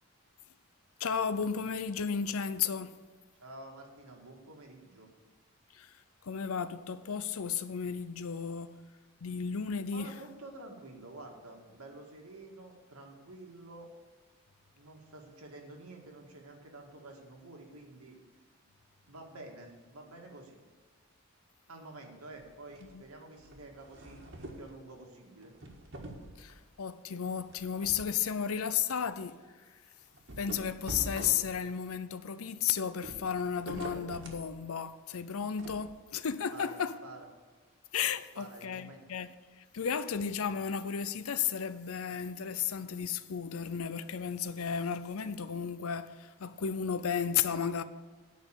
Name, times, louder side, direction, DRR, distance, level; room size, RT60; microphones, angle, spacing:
voice 1, 1.0-3.0 5.7-5.9 6.2-8.7 9.2-10.1 22.9-23.0 26.4-29.4 30.4-36.9 37.9-39.3 39.6-47.8, left 7 dB, 80° left, 0.6 m, -33 dB
voice 2, 3.4-5.1 9.9-13.9 14.7-18.2 19.1-20.6 21.7-25.5 36.5-37.3 38.3-39.1, right 2 dB, 85° right, 2.1 m, -49 dB
sound 1, 22.3-23.0 23.4-24.7 25.4-26.6 27.5-28.1 28.5-28.6 29.0-29.1 30.1-31.9 32.9-34.5 35.6-35.8, right 1 dB, 55° right, 1.6 m, -45 dB
9.5 x 5.7 x 8.4 m
head